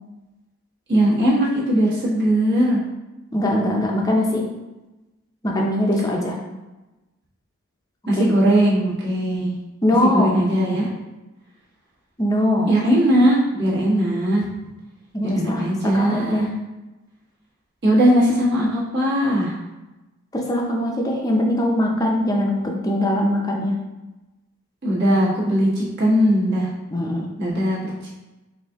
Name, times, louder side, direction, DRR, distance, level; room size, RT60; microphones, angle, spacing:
voice 1, 0.9-2.8 8.1-9.5 10.0-10.9 12.7-14.4 15.2-16.5 17.8-19.5 24.8-26.7 27.4-27.9, equal, 50° right, -7 dB, 1.3 m, -19 dB
voice 2, 3.3-4.5 5.4-6.4 8.2-8.3 9.8-10.4 12.2-12.7 15.1-15.6 15.9-16.5 20.3-23.8 26.9-27.3, left 1 dB, 15° left, -1 dB, 0.5 m, -21 dB
4.3 x 2.7 x 3.5 m, 1.1 s
head